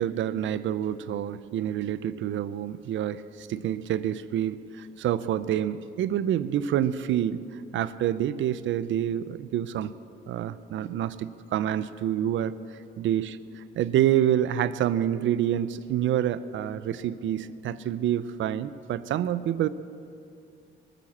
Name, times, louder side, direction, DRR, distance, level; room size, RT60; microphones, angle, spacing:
voice 1, 0.0-7.4 7.7-9.9 10.3-12.5 13.0-19.7, right 11 dB, 75° right, 15 dB, 0.6 m, -27 dB
20.5 x 9.2 x 7.3 m, 2.5 s
cardioid pair, 90°, 20 cm